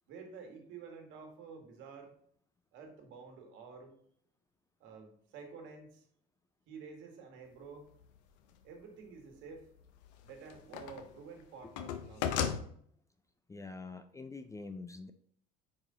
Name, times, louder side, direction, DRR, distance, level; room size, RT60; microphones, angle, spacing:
voice 1, 0.1-2.2 2.7-3.9 4.8-6.1 6.7-7.9 8.6-9.7 10.2-12.3, right 5 dB, 65° right, 3 dB, 1.6 m, -50 dB
sound 1, 8.0-8.1 9.8-11.1 11.4-12.6, left 8 dB, 85° left, 0.6 m, -35 dB
voice 2, 13.5-15.1, left 3 dB, 15° left, 9 dB, 0.4 m, -45 dB
5.0 x 4.9 x 3.8 m, 0.62 s
supercardioid pair, 85°, 21 cm